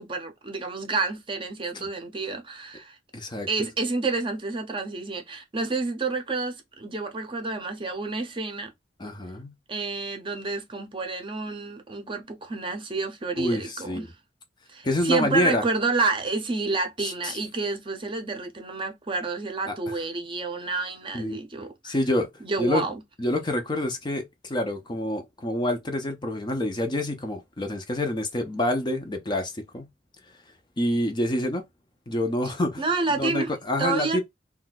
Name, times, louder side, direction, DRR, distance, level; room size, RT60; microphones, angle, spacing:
voice 1, 0.0-3.0 3.5-8.7 9.7-14.1 14.7-22.0 22.4-22.9 32.8-33.5 33.8-34.2, right 3 dB, 30° right, 0.7 m, -29 dB
voice 2, 3.1-3.5 9.0-9.5 13.4-14.1 14.8-15.6 17.0-17.4 19.7-20.0 21.1-21.4 21.8-22.3 22.6-22.8 23.2-29.9 30.8-31.6 32.1-32.8 33.1-34.2, left 1 dB, 25° left, 0.5 m, -27 dB
2.6 x 2.2 x 3.9 m
head